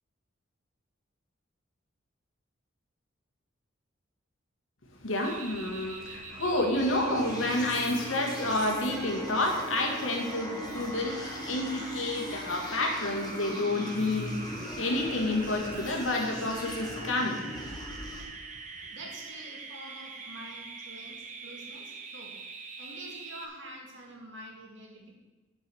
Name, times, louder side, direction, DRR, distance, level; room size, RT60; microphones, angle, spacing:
voice 1, 4.9-17.4 20.4-20.5, left 1 dB, 80° left, 1 dB, 1.9 m, -30 dB
sound 1, 5.2-23.4, right 4 dB, 35° right, 0.8 m, -44 dB
sound 2, 6.8-18.2, left 1 dB, 20° left, 1.3 m, -40 dB
voice 2, 18.4-22.3 22.8-25.2, right 1 dB, 65° right, -1 dB, 2.2 m, -47 dB
8.6 x 5.5 x 7.0 m, 1.2 s
head